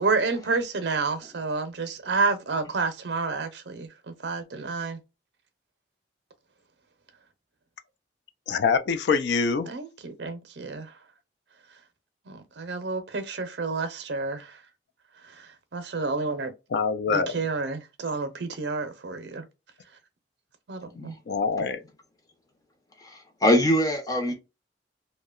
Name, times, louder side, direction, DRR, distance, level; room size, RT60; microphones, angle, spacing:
voice 1, 0.0-5.0 9.7-10.9 12.3-14.6 15.3-16.5 17.1-19.4 20.7-21.1, right 4 dB, 65° right, 0.5 m, -30 dB
voice 2, 8.5-9.7 16.7-17.3 21.3-21.8, left 5 dB, 65° left, 0.3 m, -24 dB
voice 3, 23.0-24.3, equal, 20° left, 0.6 m, -23 dB
2.7 x 2.1 x 2.3 m
head